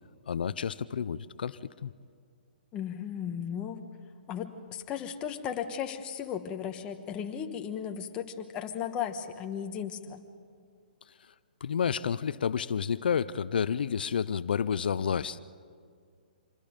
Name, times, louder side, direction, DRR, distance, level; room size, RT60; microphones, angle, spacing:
voice 1, 0.3-1.9 11.6-15.4, left 7 dB, 70° left, 16 dB, 0.6 m, -30 dB
voice 2, 2.7-3.8 4.3-10.2, left 8 dB, 20° left, 5 dB, 1.2 m, -35 dB
26.5 x 21.0 x 5.2 m, 2.1 s
hypercardioid pair, 155°, 5 cm